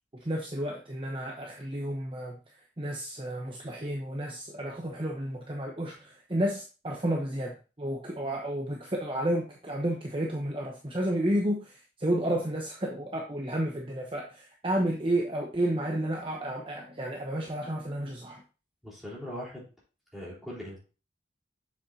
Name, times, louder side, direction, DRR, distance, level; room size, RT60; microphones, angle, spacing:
voice 1, 0.1-18.4, right 1 dB, 30° right, 0 dB, 0.9 m, -31 dB
voice 2, 18.8-19.7 20.1-20.8, equal, ahead, -6 dB, 3.8 m, -40 dB
7.2 x 7.0 x 2.8 m, 0.34 s
head